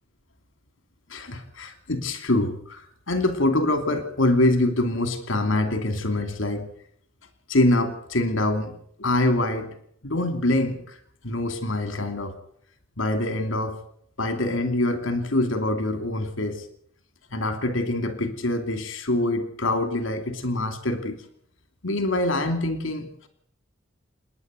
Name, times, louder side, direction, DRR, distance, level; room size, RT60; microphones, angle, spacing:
voice 1, 1.1-6.7 7.5-8.7 9.0-9.7 10.0-11.0 11.2-12.3 13.0-13.8 14.2-16.7 17.3-21.2 21.8-23.3, left 2 dB, 75° left, 8 dB, 2.7 m, -25 dB
28.5 x 10.0 x 9.6 m, 0.65 s
head